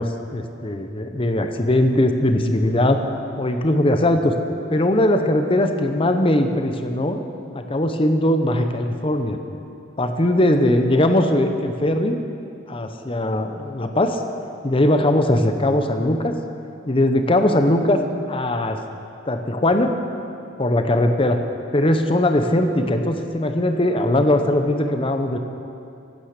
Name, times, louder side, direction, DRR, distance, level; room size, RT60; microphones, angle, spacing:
voice 1, 0.0-3.0 3.4-4.3 4.7-7.2 7.5-9.4 10.0-12.1 12.7-14.2 14.6-16.4 16.9-18.8 19.3-20.0 20.6-21.4 21.7-25.4, left 1 dB, 30° left, 6 dB, 0.8 m, -20 dB
12.0 x 9.8 x 6.6 m, 2.6 s
head